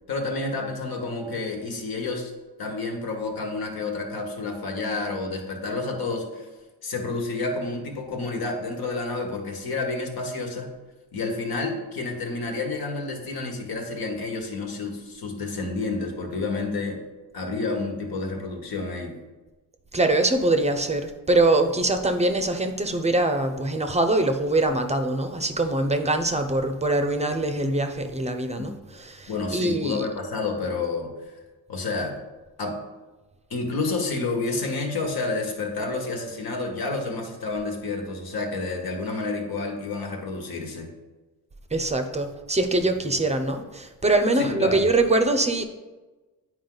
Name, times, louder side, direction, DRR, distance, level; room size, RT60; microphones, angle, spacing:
voice 1, 0.1-2.3 2.6-6.5 6.8-10.7 11.1-17.0 17.3-19.2 28.6-28.7 29.3-31.1 31.7-32.2 32.6-32.8 33.5-40.9 44.4-44.8, left 3 dB, 60° left, 3 dB, 1.5 m, -29 dB
voice 2, 19.9-30.1 41.7-45.6, right 2 dB, 15° right, 7 dB, 0.7 m, -23 dB
8.8 x 4.8 x 3.9 m, 1.2 s
cardioid pair, 80°, 41 cm